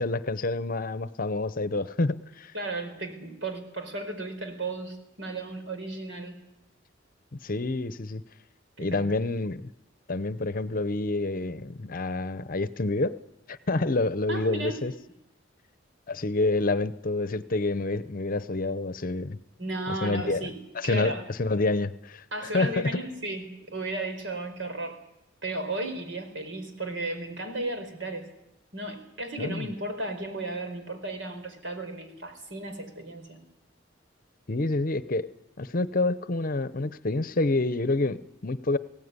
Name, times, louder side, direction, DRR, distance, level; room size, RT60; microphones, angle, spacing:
voice 1, 0.0-2.5 7.3-8.2 8.8-9.7 10.1-13.1 13.5-14.9 16.1-19.4 19.9-20.4 20.7-23.0 29.4-29.7 34.5-35.3 35.6-38.8, left 2 dB, 45° left, 15 dB, 0.8 m, -28 dB
voice 2, 2.5-6.4 8.8-9.1 14.3-14.8 19.6-20.6 20.8-21.2 22.3-25.0 25.4-28.2 28.7-33.4, right 2 dB, 70° right, 6 dB, 4.8 m, -34 dB
21.0 x 17.5 x 9.7 m, 0.90 s
head